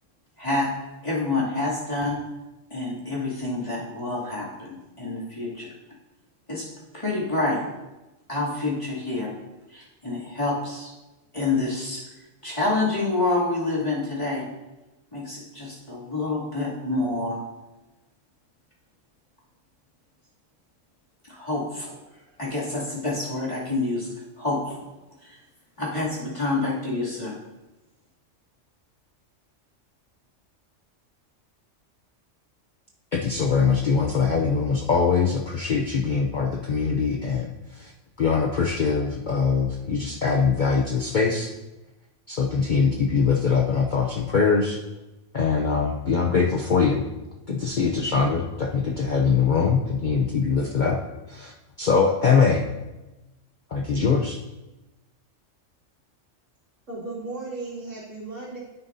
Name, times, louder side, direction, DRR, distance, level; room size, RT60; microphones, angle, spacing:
voice 1, 0.4-0.7 1.0-2.2 2.7-5.7 6.5-6.6 6.9-7.6 8.3-9.3 9.7-10.9 11.3-12.0 12.4-14.4 15.1-17.4 21.3-21.9 22.4-24.1 24.4-24.8 25.2-25.4 25.8-27.3, left 2 dB, 25° left, -7 dB, 2.6 m, -27 dB
voice 2, 33.1-37.9 38.2-41.5 42.3-44.8 45.3-47.0 47.5-51.0 51.3-51.5 51.8-52.7 53.7-54.4, left 5 dB, 50° left, 0 dB, 0.7 m, -22 dB
voice 3, 56.9-58.6, right 3 dB, 75° right, -6 dB, 2.8 m, -35 dB
9.5 x 9.4 x 2.7 m, 1.1 s
omnidirectional pair, 1.3 m